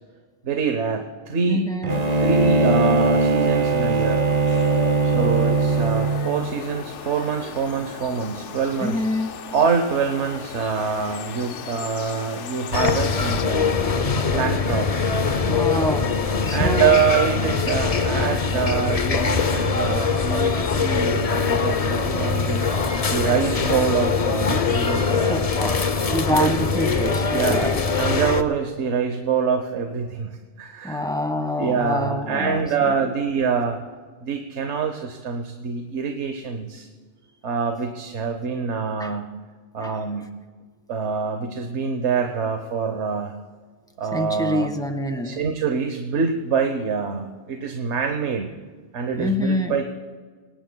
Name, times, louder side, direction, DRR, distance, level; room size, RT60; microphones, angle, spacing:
voice 1, 0.4-1.7 2.2-4.3 5.0-9.0 9.5-13.8 14.3-15.1 16.5-22.6 23.1-25.5 26.3-27.0 27.3-31.0 31.6-33.8 34.2-36.9 37.4-39.3 39.7-40.3 40.9-43.3 44.0-44.7 45.2-48.5 48.9-49.8, right 6 dB, 75° right, 5 dB, 1.3 m, -25 dB
voice 2, 1.5-1.9 8.8-9.4 15.4-16.1 16.5-17.0 25.3-25.8 26.1-27.8 30.8-32.9 39.0-39.1 39.8-40.0 44.1-45.4 49.1-49.8, left 1 dB, 5° left, 6 dB, 1.4 m, -26 dB
Bowed string instrument, 1.8-6.5, right 3 dB, 45° right, 0.7 m, -20 dB
sound 1, 1.9-13.5, left 7 dB, 90° left, 1.1 m, -35 dB
sound 2, 12.7-28.4, left 5 dB, 40° left, 0.7 m, -22 dB
26.5 x 19.0 x 2.3 m, 1.5 s
omnidirectional pair, 1.2 m